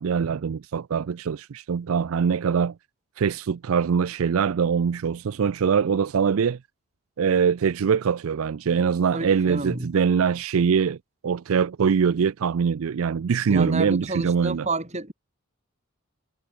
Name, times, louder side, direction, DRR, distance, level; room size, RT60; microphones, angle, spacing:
voice 1, 0.0-2.7 3.2-6.6 7.2-11.0 11.2-14.7, right 6 dB, 75° right, 0.4 m, -23 dB
voice 2, 9.1-9.9 13.5-15.1, right 2 dB, 30° right, 3.2 m, -29 dB
head